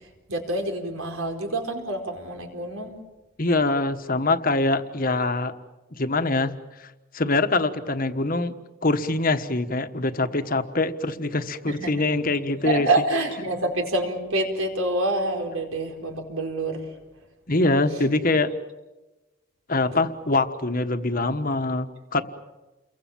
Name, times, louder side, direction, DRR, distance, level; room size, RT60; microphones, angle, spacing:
voice 1, 0.3-2.9 11.7-11.9 12.6-16.9 19.9-20.0, right 2 dB, 80° right, 3 dB, 4.8 m, -27 dB
voice 2, 3.4-5.5 5.9-8.5 8.8-12.9 17.5-18.5 19.7-22.2, left 2 dB, 40° left, 8 dB, 1.4 m, -24 dB
29.5 x 23.5 x 7.4 m, 1.1 s
head